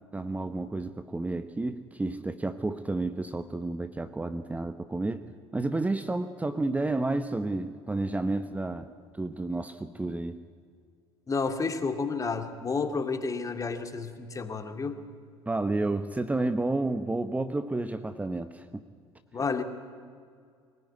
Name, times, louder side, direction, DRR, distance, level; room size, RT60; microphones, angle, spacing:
voice 1, 0.1-5.2 5.5-8.9 9.1-10.4 15.5-18.8, right 2 dB, 10° right, 10 dB, 1.1 m, -31 dB
voice 2, 11.3-15.0 19.3-19.6, left 4 dB, 25° left, 6 dB, 2.4 m, -30 dB
24.0 x 19.0 x 9.6 m, 2.2 s
figure-of-eight pair, 65°, 13 cm